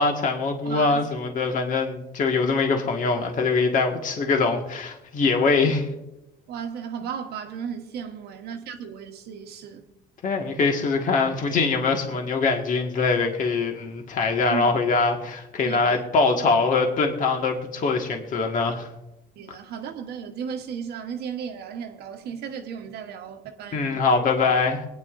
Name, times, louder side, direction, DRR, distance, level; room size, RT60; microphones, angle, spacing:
voice 1, 0.0-5.9 10.2-18.9 23.7-24.9, left 4 dB, 50° left, 1.6 m, -23 dB
voice 2, 0.6-1.1 6.5-9.9 14.5-14.7 15.6-16.0 19.4-24.1, right 7 dB, 70° right, 1.1 m, -35 dB
23.0 x 9.5 x 2.5 m
cardioid pair, 110°, 17 cm